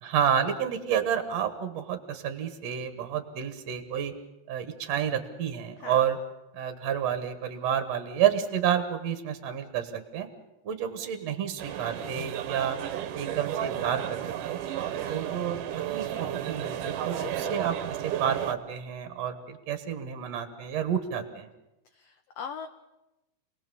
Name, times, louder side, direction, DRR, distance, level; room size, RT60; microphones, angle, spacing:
voice 1, 0.0-4.1 4.5-6.2 6.5-10.3 10.6-12.8 13.1-14.6 15.1-15.6 15.9-17.8 18.0-21.5, right 9 dB, 60° right, 9 dB, 2.4 m, -30 dB
sound 1, 11.6-18.5, right 11 dB, 80° right, 2.6 m, -33 dB
voice 2, 14.9-15.3 17.1-17.6 21.9-22.7, left 7 dB, 65° left, 6 dB, 1.7 m, -41 dB
27.5 x 19.0 x 7.0 m, 0.96 s
omnidirectional pair, 3.7 m